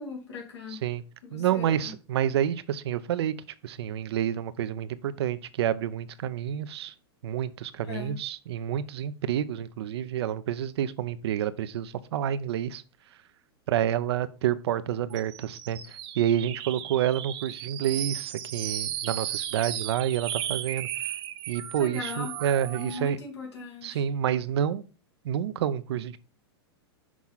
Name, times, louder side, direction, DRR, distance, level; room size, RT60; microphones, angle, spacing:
voice 1, 0.0-0.8 1.2-1.9 7.8-8.2 21.8-22.3 22.8-24.0, left 4 dB, 85° left, 2.6 m, -39 dB
voice 2, 0.7-1.0 1.3-3.3 3.6-6.9 7.2-12.8 13.7-20.9 21.5-23.2 23.8-24.8 25.2-26.2, right 10 dB, 70° right, 0.6 m, -29 dB
sound 1, 15.1-23.1, right 11 dB, 40° right, 0.8 m, -35 dB
6.1 x 3.5 x 5.6 m
hypercardioid pair, 125°, 14 cm